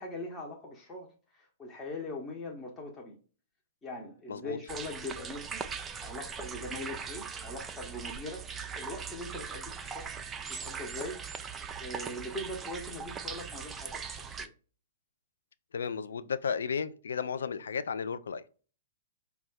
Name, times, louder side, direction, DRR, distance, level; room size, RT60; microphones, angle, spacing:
voice 1, 0.0-3.2 3.8-5.6 6.0-8.5 8.8-10.1 10.5-14.5, left 1 dB, 15° left, 0.8 m, -41 dB
sound 1, 4.7-14.5, right 6 dB, 15° right, 0.4 m, -40 dB
voice 2, 15.7-18.4, left 6 dB, 65° left, 0.3 m, -34 dB
4.9 x 2.3 x 3.9 m
figure-of-eight pair, 110°, 0 cm